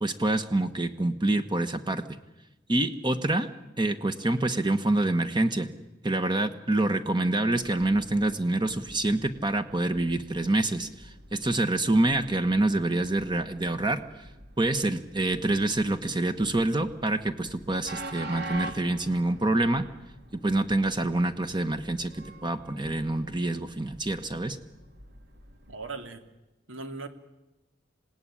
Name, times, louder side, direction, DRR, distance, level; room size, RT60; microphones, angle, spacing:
voice 1, 0.0-2.2 2.7-3.5 3.8-5.7 6.0-14.0 14.6-19.8 20.4-24.6, right 2 dB, 25° right, 10 dB, 1.2 m, -26 dB
Train, 7.5-26.0, right 2 dB, 55° right, 2.6 m, -46 dB
voice 2, 25.7-26.2 26.7-27.1, right 3 dB, 80° right, 8 dB, 2.6 m, -38 dB
27.0 x 18.0 x 10.0 m, 1.0 s
head